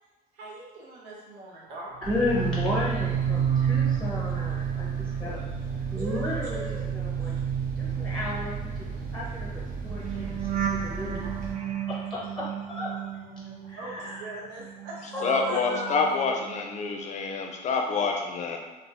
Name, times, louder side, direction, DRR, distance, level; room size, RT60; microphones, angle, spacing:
voice 1, 0.3-2.0 5.9-7.4 13.8-15.6, right 2 dB, 85° right, -4 dB, 0.6 m, -41 dB
voice 2, 1.7-5.4 5.9-6.6 6.9-7.3 7.8-8.9 9.1-11.3 11.9-12.9 13.7-14.2 15.1-16.1, left 1 dB, 5° left, -5 dB, 0.6 m, -33 dB
sound 1, 2.0-14.3 14.6-16.7 17.0-17.3, right 9 dB, 45° right, 0.4 m, -31 dB
sound 2, 2.0-11.5, right 4 dB, 60° right, 1.1 m, -37 dB
sound 3, 7.8-14.8, right 1 dB, 10° right, 0.9 m, -48 dB
voice 3, 15.2-18.6, left 4 dB, 45° left, 3 dB, 0.5 m, -27 dB
3.3 x 2.0 x 2.7 m, 1.3 s
cardioid pair, 110°, 17 cm